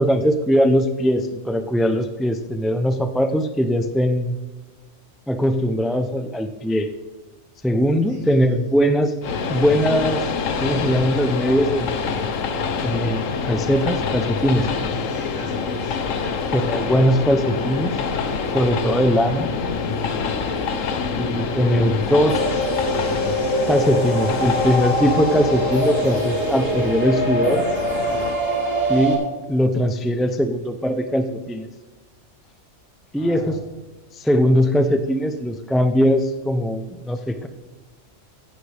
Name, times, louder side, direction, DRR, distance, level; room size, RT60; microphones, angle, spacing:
voice 1, 0.0-4.4 5.3-6.9 7.6-9.1 9.5-10.3 10.6-12.2 12.8-14.7 16.5-18.0 18.5-19.5 21.2-22.4 23.7-27.6 28.9-31.7 33.1-33.6 34.1-37.5, equal, ahead, 8 dB, 0.3 m, -20 dB
voice 2, 8.1-8.7 15.1-16.4 33.2-33.6, left 1 dB, 40° left, -4 dB, 4.1 m, -39 dB
Train, 9.2-28.4, left 5 dB, 85° left, 1.3 m, -26 dB
sound 1, 22.3-29.1, equal, 90° right, 2.7 m, -23 dB
16.0 x 11.0 x 3.4 m, 1.2 s
omnidirectional pair, 1.3 m